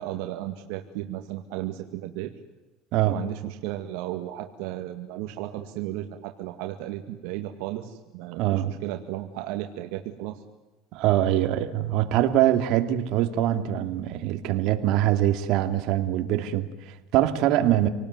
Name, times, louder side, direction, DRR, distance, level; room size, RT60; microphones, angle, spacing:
voice 1, 0.0-2.3 3.1-10.4, right 13 dB, 80° right, 5 dB, 2.1 m, -34 dB
voice 2, 8.4-8.7 10.9-17.9, right 12 dB, 60° right, 7 dB, 2.5 m, -23 dB
28.5 x 19.0 x 9.6 m, 1.1 s
cardioid pair, 130°, 0 cm